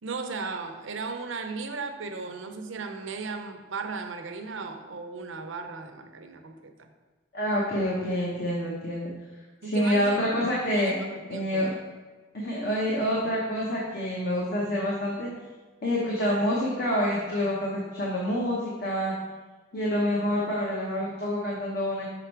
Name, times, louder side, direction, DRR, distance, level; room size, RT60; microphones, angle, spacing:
voice 1, 0.0-6.9 9.6-10.2 10.7-11.7, right 4 dB, 70° right, 6 dB, 0.6 m, -36 dB
voice 2, 7.3-9.1 9.6-10.9 11.3-11.7 12.3-15.3 15.8-19.1 19.7-22.1, equal, 50° left, -4 dB, 1.0 m, -27 dB
5.9 x 5.2 x 4.5 m, 1.3 s
head